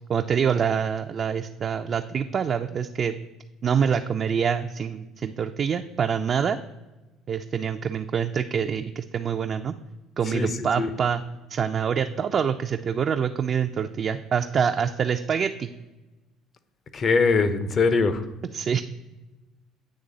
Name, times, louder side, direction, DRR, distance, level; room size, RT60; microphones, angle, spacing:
voice 1, 0.1-3.2 3.6-6.6 7.3-9.7 10.2-11.2 11.5-15.7 18.5-18.8, right 7 dB, 45° right, 5 dB, 0.3 m, -25 dB
voice 2, 10.3-10.9 16.9-18.2, left 4 dB, 40° left, 13 dB, 0.6 m, -22 dB
8.9 x 3.2 x 3.9 m, 1.1 s
supercardioid pair, 95°, 0 cm